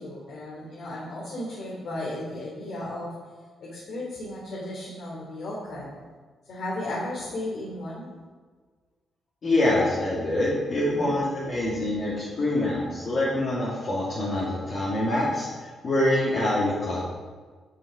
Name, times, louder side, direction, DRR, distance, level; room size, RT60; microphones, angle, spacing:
voice 1, 0.0-3.1 3.6-6.0 6.5-8.1 10.8-11.2 11.7-12.6, left 1 dB, 55° left, -5 dB, 2.9 m, -35 dB
voice 2, 9.4-15.5 15.8-17.0, left 1 dB, 35° left, -8 dB, 2.5 m, -25 dB
9.7 x 9.4 x 5.0 m, 1.5 s
cardioid pair, 170°, 0 cm